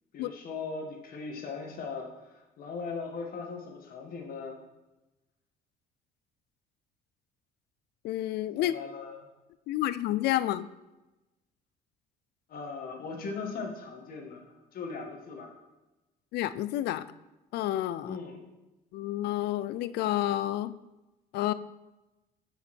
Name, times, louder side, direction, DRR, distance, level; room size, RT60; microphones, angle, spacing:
voice 1, 0.1-4.6 8.6-9.3 12.5-15.5 18.0-18.4, left 4 dB, 60° left, 2 dB, 1.8 m, -39 dB
voice 2, 8.0-8.7 9.7-10.7 16.3-17.1 17.5-18.2 18.9-20.7 21.3-21.5, left 14 dB, 75° left, 15 dB, 0.4 m, -29 dB
10.5 x 5.8 x 4.3 m, 1.0 s
cardioid pair, 110°, 17 cm